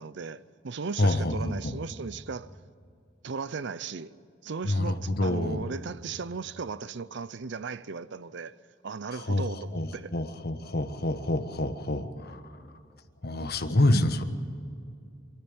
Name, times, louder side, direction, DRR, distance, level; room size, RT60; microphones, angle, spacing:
voice 1, 0.0-2.5 3.2-4.1 4.4-8.5 8.8-10.1, right 5 dB, 60° right, 0.6 m, -36 dB
voice 2, 1.0-1.7 4.6-5.7 9.1-9.4 9.7-12.4 13.2-14.2, left 1 dB, 55° left, 1.3 m, -27 dB
24.5 x 14.0 x 8.9 m
head